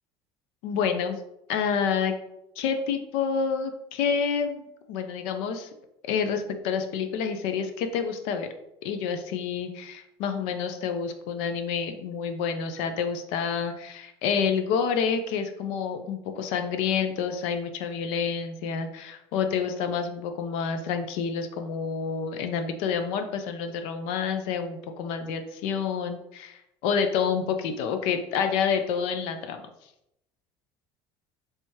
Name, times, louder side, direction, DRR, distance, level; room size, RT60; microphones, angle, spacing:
voice 1, 0.6-1.2 1.5-2.1 2.6-5.7 6.1-8.5 8.8-29.6, left 6 dB, 85° left, 7 dB, 0.5 m, -28 dB
3.3 x 2.9 x 4.5 m, 0.84 s
cardioid pair, 180°, 10 cm